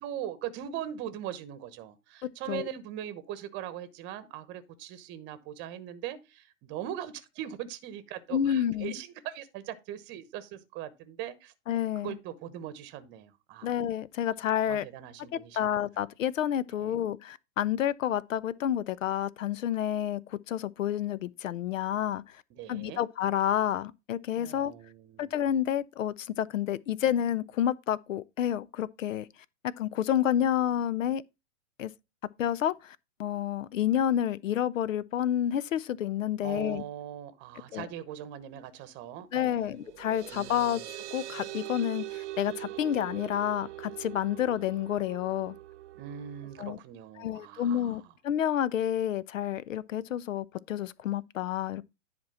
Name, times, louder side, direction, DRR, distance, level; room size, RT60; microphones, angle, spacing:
voice 1, 0.0-11.5 12.0-13.7 14.7-15.7 16.8-17.0 22.5-23.0 24.4-25.3 36.4-39.7 40.3-40.9 46.0-48.1, right 11 dB, 25° right, 1.0 m, -40 dB
voice 2, 2.2-2.7 8.3-8.9 11.7-12.1 13.6-14.8 15.5-22.2 22.7-24.7 25.2-29.3 29.8-31.2 31.8-31.9 32.4-36.8 37.7-37.8 39.3-45.6 46.6-46.8 47.2-51.8, left 10 dB, 70° left, 0.6 m, -29 dB
sound 1, 39.6-46.8, right 15 dB, 55° right, 0.9 m, -42 dB
10.5 x 4.4 x 4.1 m
hypercardioid pair, 120°, 41 cm